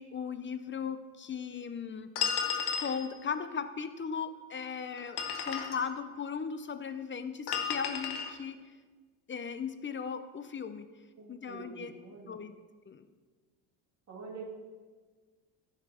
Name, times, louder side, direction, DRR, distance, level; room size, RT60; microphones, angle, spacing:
voice 1, 0.0-2.1 2.7-8.6 9.3-10.9 11.3-11.9 12.3-12.5 12.9-13.0, left 6 dB, 25° left, 11 dB, 0.6 m, -37 dB
sound 1, 2.2-3.0 5.0-5.8 7.5-8.3, left 7 dB, 55° left, 1.4 m, -33 dB
voice 2, 11.1-12.4 14.1-14.5, right 4 dB, 35° right, -3 dB, 2.3 m, -46 dB
11.0 x 6.8 x 4.3 m, 1.4 s
hypercardioid pair, 75°, 48 cm